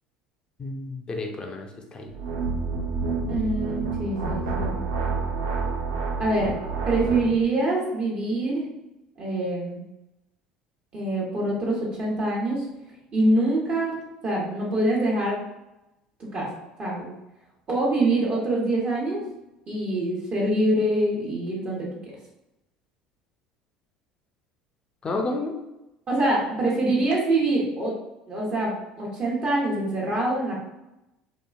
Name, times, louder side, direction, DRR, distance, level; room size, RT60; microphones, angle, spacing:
voice 1, 0.6-2.1 25.0-25.5, left 2 dB, 30° left, 2 dB, 0.5 m, -31 dB
sound 1, 2.1-7.4, right 4 dB, 80° right, 0.4 m, -28 dB
voice 2, 3.3-4.8 6.2-6.5 6.9-8.6 9.2-9.8 10.9-12.6 13.1-14.0 14.2-15.4 16.3-16.5 16.8-17.1 17.7-19.2 19.7-22.1 26.1-27.9 28.3-28.7 29.0-30.6, right 1 dB, 45° right, -4 dB, 1.0 m, -25 dB
2.9 x 2.4 x 2.3 m, 0.94 s
hypercardioid pair, 70°, 3 cm